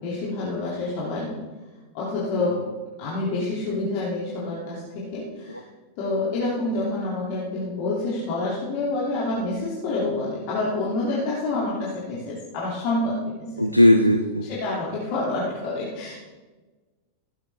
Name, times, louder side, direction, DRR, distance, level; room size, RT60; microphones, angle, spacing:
voice 1, 0.0-1.4 1.9-2.5 3.0-5.7 6.0-13.5 14.5-16.2, left 2 dB, 45° left, -6 dB, 2.8 m, -27 dB
voice 2, 13.6-14.5, left 1 dB, 90° left, 6 dB, 0.6 m, -17 dB
16.5 x 8.6 x 3.5 m, 1.3 s
figure-of-eight pair, 90°, 0 cm